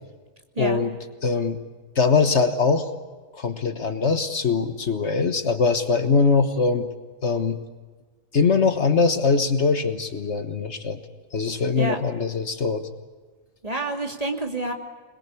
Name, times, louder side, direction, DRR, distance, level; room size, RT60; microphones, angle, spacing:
voice 1, 0.6-0.9 1.2-1.6 1.9-2.9 3.3-6.9 7.2-7.6 8.3-11.0 11.3-12.9, left 4 dB, 60° left, 9 dB, 1.6 m, -22 dB
voice 2, 13.6-14.7, right 2 dB, 30° right, 3 dB, 2.8 m, -28 dB
27.0 x 21.5 x 8.4 m, 1.4 s
omnidirectional pair, 1.4 m